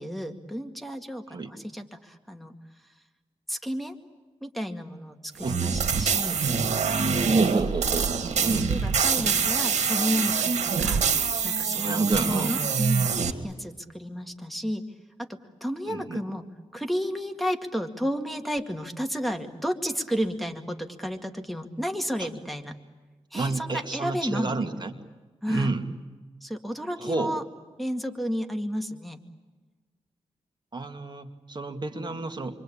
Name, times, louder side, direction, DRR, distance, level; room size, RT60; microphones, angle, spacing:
voice 1, 0.0-2.5 3.5-4.0 4.4-6.4 7.0-7.4 8.7-11.0 11.4-14.8 15.2-16.5 16.7-22.7 23.3-24.8 25.4-25.7 26.4-27.4 27.8-29.2, equal, ahead, 3 dB, 2.1 m, -32 dB
sound 1, 5.4-13.3, right 5 dB, 90° right, 1.9 m, -25 dB
voice 2, 7.2-8.1 8.4-8.7 11.7-12.5 15.9-16.2 22.2-22.3 23.3-24.9 25.5-25.9 27.0-27.3 30.7-32.6, right 3 dB, 40° right, 5 dB, 2.3 m, -30 dB
28.5 x 24.0 x 8.7 m, 1.3 s
cardioid pair, 80°, 11 cm